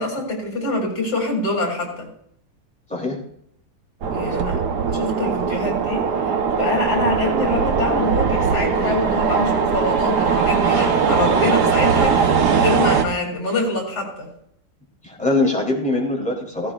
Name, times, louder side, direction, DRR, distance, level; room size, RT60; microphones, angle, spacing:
voice 1, 0.0-2.1 4.1-4.6 4.9-14.3, left 2 dB, 85° left, 0 dB, 3.5 m, -25 dB
sound 1, 4.0-13.0, right 6 dB, 85° right, 1.6 m, -20 dB
voice 2, 15.0-16.7, left 2 dB, 5° left, -2 dB, 3.1 m, -22 dB
16.0 x 16.0 x 2.4 m, 0.71 s
omnidirectional pair, 1.7 m